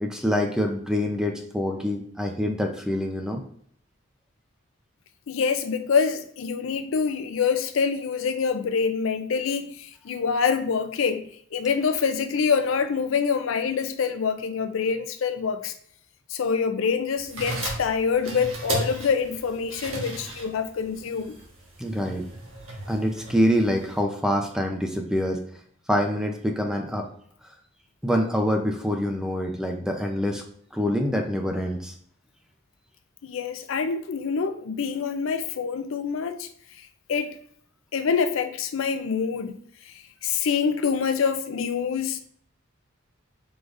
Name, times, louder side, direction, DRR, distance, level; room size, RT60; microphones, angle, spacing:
voice 1, 0.0-3.4 21.8-22.2 22.9-25.4 25.9-27.0 28.0-30.4 30.7-31.9, equal, 5° right, 0.5 m, -25 dB
voice 2, 5.3-11.2 11.5-15.7 16.3-21.4 33.2-36.5 36.8-37.3 37.9-39.6 39.9-42.2, left 6 dB, 75° left, 0.5 m, -26 dB
sound 1, 17.2-24.0, right 2 dB, 90° right, 1.3 m, -35 dB
4.9 x 3.8 x 2.5 m
head